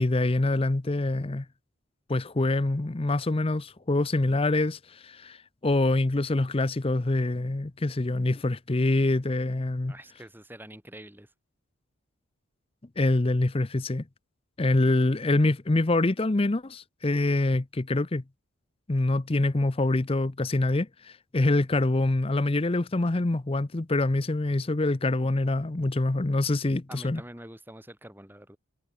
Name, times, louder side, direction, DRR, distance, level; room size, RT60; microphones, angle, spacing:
voice 1, 0.0-1.5 2.1-9.9 13.0-14.0 14.6-18.2 18.9-27.2, left 2 dB, 25° left, 0.6 m, -25 dB
voice 2, 9.9-11.3 26.9-28.6, right 1 dB, 10° right, 3.6 m, -46 dB
head